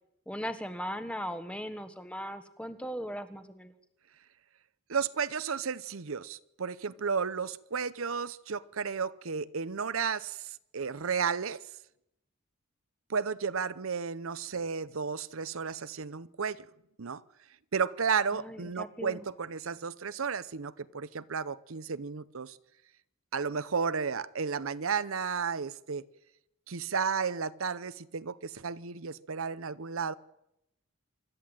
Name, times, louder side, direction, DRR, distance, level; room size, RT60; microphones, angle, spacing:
voice 1, 0.3-3.7 18.3-19.2, equal, 5° left, 1.3 m, -38 dB
voice 2, 4.9-11.6 13.1-16.7 17.0-17.2 17.7-22.6 23.3-26.0 26.7-30.1, right 6 dB, 80° right, 0.8 m, -33 dB
25.5 x 12.5 x 9.0 m
head